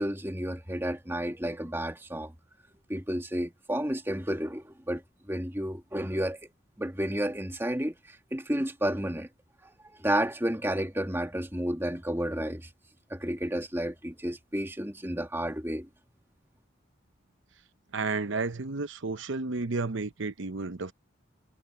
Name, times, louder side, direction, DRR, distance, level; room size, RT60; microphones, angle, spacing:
voice 1, 0.0-2.3 2.9-5.0 5.3-6.4 6.8-9.3 9.6-9.7 10.0-12.7 13.1-15.9, right 1 dB, 10° right, 2.2 m, -31 dB
voice 2, 17.9-20.9, right 3 dB, 70° right, 0.8 m, -32 dB
head